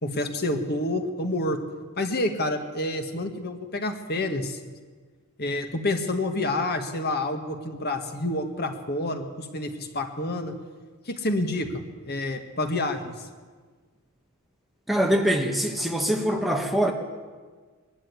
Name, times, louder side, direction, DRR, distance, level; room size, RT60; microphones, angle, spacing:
voice 1, 0.0-1.6 2.0-4.6 5.4-10.6 11.1-11.8 12.1-13.1, left 1 dB, 45° left, 5 dB, 1.8 m, -28 dB
voice 2, 14.9-16.9, equal, ahead, 2 dB, 1.5 m, -23 dB
21.5 x 13.0 x 9.8 m, 1.5 s
head